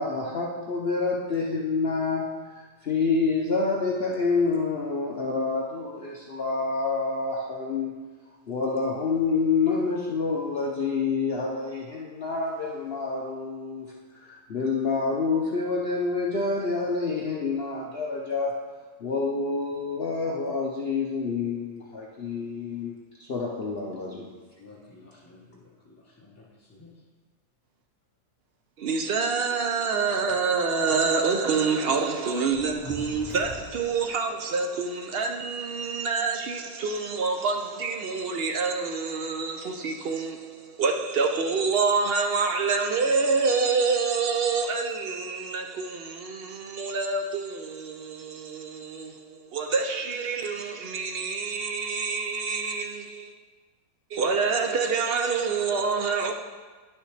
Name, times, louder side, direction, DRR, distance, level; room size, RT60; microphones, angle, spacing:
voice 1, 0.0-8.0 8.5-18.6 19.0-24.3, left 4 dB, 50° left, 0.8 m, -28 dB
voice 2, 24.6-27.0, left 3 dB, 10° left, 0.9 m, -52 dB
voice 3, 28.8-53.3 54.1-56.3, right 4 dB, 80° right, 0.5 m, -27 dB
sound 1, 32.5-34.2, equal, 35° left, 1.8 m, -41 dB
11.0 x 6.5 x 3.3 m
omnidirectional pair, 1.7 m